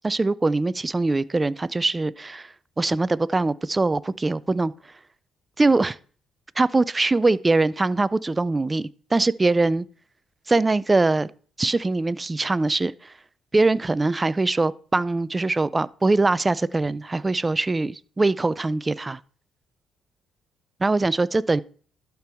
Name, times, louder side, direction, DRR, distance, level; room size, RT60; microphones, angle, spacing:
voice 1, 0.0-2.5 2.8-4.7 5.6-6.0 6.6-9.9 10.5-11.3 11.6-13.1 13.5-19.2 20.8-21.6, right 3 dB, 20° right, 0.4 m, -22 dB
12.0 x 4.5 x 3.5 m
cardioid pair, 90°, 0 cm